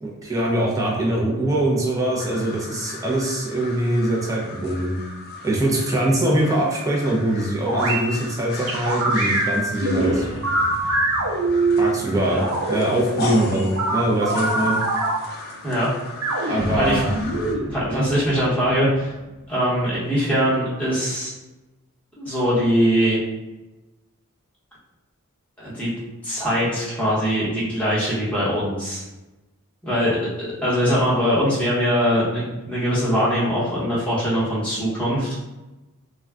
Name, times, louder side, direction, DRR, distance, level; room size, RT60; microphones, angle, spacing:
voice 1, 0.0-5.0 5.4-10.3 11.8-12.4 12.7-14.8 16.5-17.1 17.9-18.0, right 1 dB, 15° right, -4 dB, 0.5 m, -22 dB
sound 1, 2.2-17.6, left 2 dB, 45° left, 0.4 m, -37 dB
sound 2, 7.7-8.0 8.7-11.9 12.4-12.8 13.8-15.1 16.2-17.6, right 2 dB, 65° right, 0.6 m, -23 dB
sound 3, 9.9-13.6 16.5-20.3, left 1 dB, 45° right, 1.0 m, -37 dB
voice 2, 16.4-17.0 17.7-19.1 19.5-21.3 22.2-23.2 25.6-25.9 26.2-29.0 29.8-35.3, equal, 5° left, -9 dB, 1.0 m, -22 dB
2.2 x 2.2 x 3.5 m, 1.1 s
head